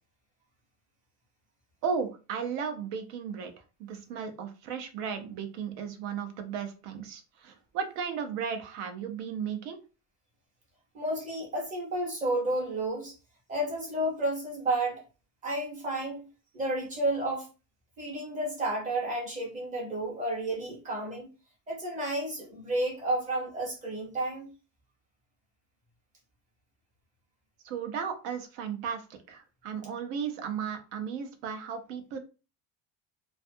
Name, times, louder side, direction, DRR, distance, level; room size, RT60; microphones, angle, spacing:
voice 1, 1.8-3.5 3.8-9.8 27.6-29.0 29.3-32.2, right 7 dB, 75° right, 7 dB, 0.7 m, -35 dB
voice 2, 10.9-13.1 13.5-15.0 15.4-16.2 16.5-17.5 18.0-21.3 21.7-24.5, right 1 dB, 15° right, -2 dB, 0.6 m, -31 dB
2.4 x 2.3 x 2.6 m, 0.33 s
cardioid pair, 175°, 47 cm